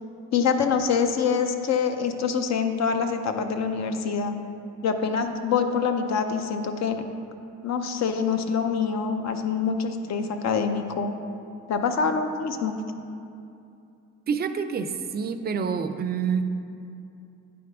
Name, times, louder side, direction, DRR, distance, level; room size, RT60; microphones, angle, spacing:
voice 1, 0.3-4.4 4.8-7.0 7.6-11.2 11.7-12.8, left 6 dB, 60° left, 7 dB, 0.6 m, -25 dB
voice 2, 14.3-16.4, right 6 dB, 35° right, 9 dB, 0.4 m, -27 dB
9.4 x 3.6 x 4.8 m, 2.6 s
cardioid pair, 90°, 30 cm